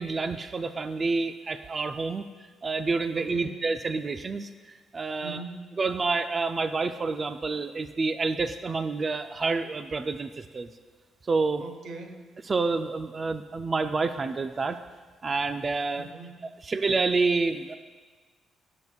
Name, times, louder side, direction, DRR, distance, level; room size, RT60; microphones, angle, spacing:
voice 1, 0.0-2.2 2.6-5.4 5.8-10.7 11.3-11.6 12.5-14.8 15.2-16.1 16.6-17.8, right 3 dB, 35° right, 10 dB, 0.4 m, -28 dB
voice 2, 3.1-3.7 5.2-5.6 11.6-12.3 16.0-16.5, right 3 dB, 70° right, 4 dB, 1.2 m, -41 dB
15.0 x 6.9 x 2.3 m, 1.4 s
cardioid pair, 90°, 0 cm